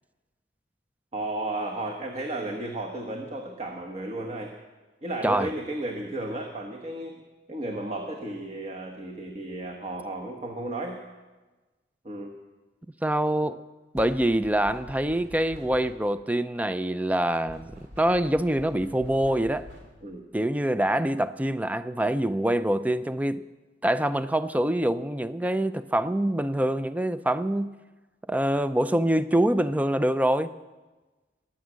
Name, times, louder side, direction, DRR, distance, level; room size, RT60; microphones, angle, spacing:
voice 1, 1.1-4.5 5.0-7.2 7.5-11.0 12.0-12.3 20.0-20.2, right 1 dB, 35° right, 1 dB, 1.2 m, -33 dB
voice 2, 13.0-13.6 13.9-19.7 20.3-23.5 23.8-27.7 28.3-30.5, right 1 dB, 10° right, 13 dB, 0.4 m, -25 dB
sound 1, 13.9-16.2 17.5-20.1, left 1 dB, 80° right, 2.6 m, -46 dB
22.5 x 8.9 x 6.3 m, 1.2 s
head